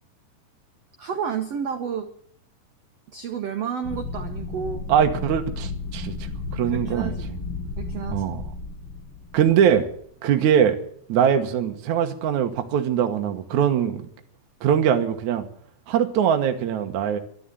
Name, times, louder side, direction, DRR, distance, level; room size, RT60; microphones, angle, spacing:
voice 1, 1.0-2.1 3.1-4.9 6.7-7.3 7.8-8.2, right 7 dB, 80° right, 6 dB, 1.4 m, -30 dB
sound 1, 3.8-10.0, left 3 dB, 35° left, 2.1 m, -33 dB
voice 2, 4.9-7.2 8.1-8.4 9.3-9.9 10.2-10.8 11.1-14.1 14.6-15.4 15.9-17.2, right 8 dB, 60° right, 5 dB, 2.3 m, -22 dB
12.5 x 11.5 x 8.4 m, 0.62 s
omnidirectional pair, 4.5 m